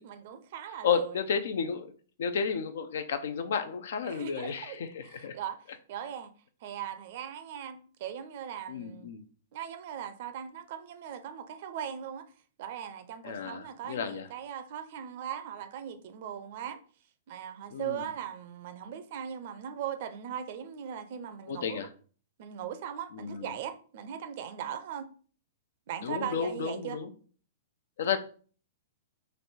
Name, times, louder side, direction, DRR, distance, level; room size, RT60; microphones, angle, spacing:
voice 1, 0.0-1.2 4.0-6.3 6.6-9.1 9.5-12.3 12.6-16.8 17.3-21.9 22.4-25.1 25.9-27.0, right 9 dB, 55° right, 0.5 m, -39 dB
voice 2, 0.8-1.9 2.2-5.4 8.7-9.2 13.2-14.3 17.7-18.1 21.5-21.9 23.1-23.5 26.0-27.1 28.0-28.2, left 6 dB, 70° left, 0.5 m, -32 dB
3.2 x 2.6 x 4.2 m
hypercardioid pair, 125°, 0 cm